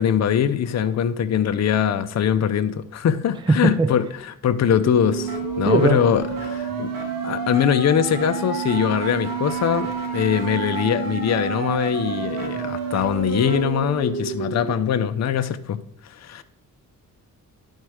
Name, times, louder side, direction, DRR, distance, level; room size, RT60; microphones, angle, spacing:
voice 1, 0.0-6.9 7.2-15.8 16.1-16.4, left 9 dB, 55° left, 0.6 m, -22 dB
voice 2, 3.5-3.9 5.7-6.0, right 3 dB, 15° right, 0.5 m, -19 dB
sound 1, 4.7-14.7, right 5 dB, 80° right, 1.9 m, -29 dB
11.0 x 4.5 x 4.7 m
cardioid pair, 100°, 33 cm